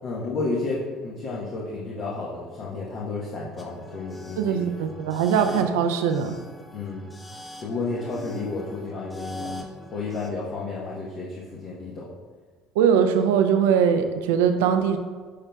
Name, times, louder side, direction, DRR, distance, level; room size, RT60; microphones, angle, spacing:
voice 1, 0.0-4.6 4.9-5.1 6.7-7.1 7.6-9.5 9.9-12.1, left 3 dB, 55° left, -5 dB, 1.1 m, -31 dB
sound 1, 3.6-10.3, left 1 dB, 20° left, 1.1 m, -41 dB
voice 2, 4.4-6.4 12.8-15.0, right 7 dB, 75° right, 7 dB, 0.5 m, -21 dB
9.9 x 4.4 x 2.3 m, 1.6 s
hypercardioid pair, 60°, 0 cm